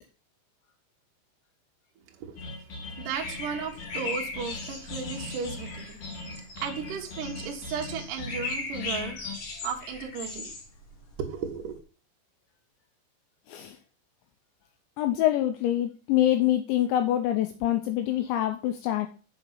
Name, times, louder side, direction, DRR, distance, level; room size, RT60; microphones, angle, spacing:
sound 1, 2.4-9.3, left 3 dB, 65° left, 1.5 m, -40 dB
voice 1, 3.0-6.2 6.6-9.2 9.6-10.5 11.2-11.8, right 6 dB, 70° right, 1 dB, 2.0 m, -35 dB
sound 2, 3.1-11.8, left 3 dB, 50° left, 2.5 m, -39 dB
voice 2, 15.0-19.1, left 12 dB, 90° left, 6 dB, 2.6 m, -25 dB
7.2 x 6.0 x 5.7 m, 0.37 s
omnidirectional pair, 5.9 m